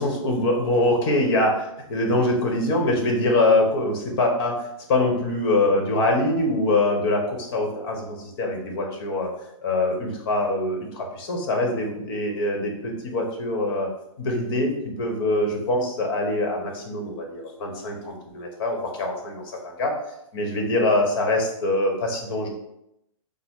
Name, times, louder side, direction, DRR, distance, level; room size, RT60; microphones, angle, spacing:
voice 1, 0.0-4.6 4.9-9.3 9.6-13.9 14.2-14.7 15.0-19.4 19.8-19.9 20.3-22.5, left 2 dB, 45° left, 1 dB, 1.2 m, -23 dB
5.8 x 2.1 x 3.7 m, 0.83 s
hypercardioid pair, 135°, 17 cm